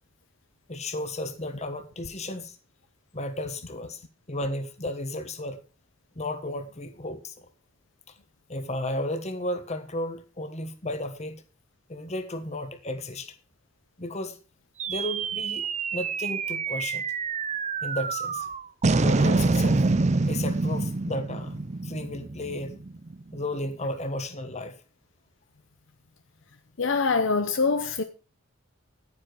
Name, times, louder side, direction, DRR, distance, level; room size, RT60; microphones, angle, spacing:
voice 1, 0.7-2.6 3.1-4.0 4.3-5.6 6.1-7.5 8.5-11.4 11.9-13.3 14.0-14.4 14.9-17.0 17.8-18.5 19.0-19.9 20.3-22.8 23.3-24.8, left 1 dB, 35° left, 1.4 m, -33 dB
sound 1, 14.8-23.4, right 3 dB, 35° right, 0.6 m, -26 dB
voice 2, 26.8-28.0, left 4 dB, 65° left, 0.7 m, -24 dB
10.0 x 9.7 x 4.8 m
head